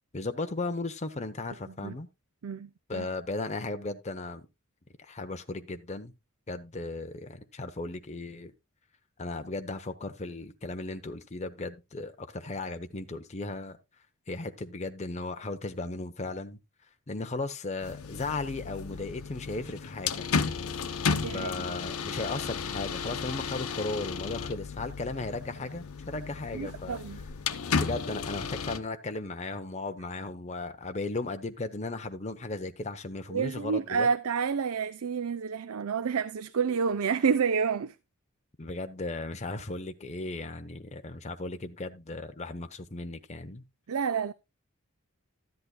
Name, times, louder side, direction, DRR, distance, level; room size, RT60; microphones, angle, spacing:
voice 1, 0.1-2.1 2.9-4.5 5.0-6.1 6.5-8.5 9.2-13.8 14.3-16.6 17.1-20.3 21.3-27.0 27.8-34.1 38.6-43.6, left 2 dB, 30° left, 0.8 m, -36 dB
voice 2, 1.7-2.0 2.4-3.1 21.2-21.7 26.5-27.2 33.3-38.0 43.9-44.3, right 6 dB, 80° right, 0.5 m, -29 dB
sound 1, 17.8-28.8, left 5 dB, 90° left, 0.9 m, -33 dB
13.5 x 10.5 x 2.2 m
head